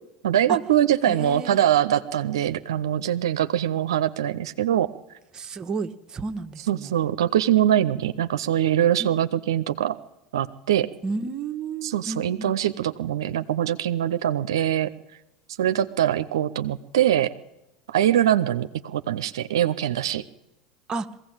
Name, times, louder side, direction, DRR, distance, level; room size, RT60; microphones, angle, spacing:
voice 1, 0.2-4.9 6.7-10.0 10.3-10.9 11.8-14.9 15.6-17.3 17.9-20.2, right 11 dB, 85° right, 10 dB, 0.7 m, -23 dB
voice 2, 1.1-1.6 5.3-6.9 7.8-7.9 9.0-9.1 11.0-12.5 20.9-21.1, right 4 dB, 30° right, 8 dB, 1.2 m, -32 dB
21.0 x 16.0 x 8.8 m, 0.96 s
hypercardioid pair, 90°, 2 cm